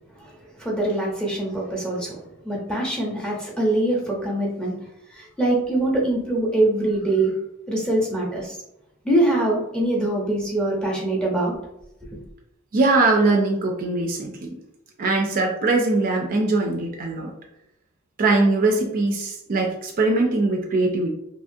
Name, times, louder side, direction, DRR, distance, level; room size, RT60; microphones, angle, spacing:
voice 1, 0.6-2.2 2.4-4.7 5.1-7.3 7.7-8.6 9.0-11.5 12.0-12.1, right 1 dB, 5° left, -4 dB, 0.7 m, -23 dB
voice 2, 12.7-14.6 15.0-17.3 18.2-21.1, right 3 dB, 40° right, 1 dB, 0.4 m, -21 dB
2.9 x 2.4 x 2.6 m, 0.83 s
head